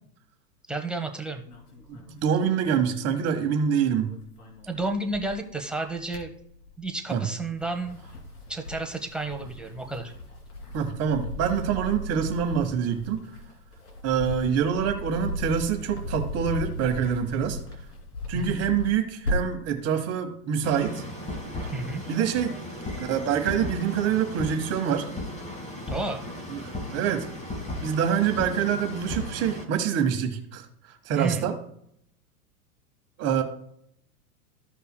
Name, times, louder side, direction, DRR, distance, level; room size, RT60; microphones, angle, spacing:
voice 1, 0.7-1.4 4.7-6.3 6.8-8.0 8.5-10.1 18.3-18.6 21.7-22.0 25.9-26.2 31.1-31.5, right 2 dB, ahead, 2 dB, 1.0 m, -31 dB
sound 1, 1.5-3.6 3.9-5.5 5.9-6.9 7.4-19.7, left 2 dB, 85° left, 3.0 m, -36 dB
voice 2, 1.9-4.1 7.1-7.2 10.7-13.2 14.0-17.6 18.3-21.0 22.1-22.5 23.0-25.1 26.5-27.3 27.8-30.6 31.0-31.5 33.2-33.4, right 8 dB, 35° right, 5 dB, 1.4 m, -26 dB
sound 2, 20.6-29.6, left 1 dB, 15° left, 2.1 m, -36 dB
15.0 x 5.4 x 2.2 m, 0.69 s
hypercardioid pair, 115°, 45 cm